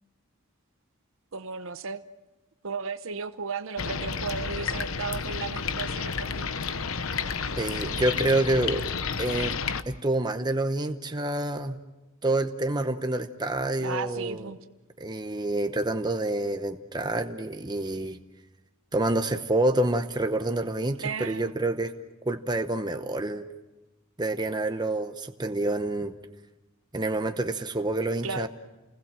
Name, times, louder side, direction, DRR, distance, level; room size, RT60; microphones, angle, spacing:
voice 1, 1.3-2.0 2.6-6.5 13.8-14.6 21.0-21.5 28.2-28.5, right 5 dB, 65° right, 10 dB, 0.8 m, -34 dB
sound 1, 3.8-9.8, left 5 dB, 70° left, 1.0 m, -31 dB
voice 2, 7.6-8.9 9.2-9.5 9.9-11.8 12.2-14.5 15.0-18.2 18.9-21.9 22.3-23.5 24.2-26.1 26.9-28.5, right 2 dB, 20° right, 7 dB, 0.9 m, -27 dB
29.5 x 20.5 x 7.6 m, 1.1 s
head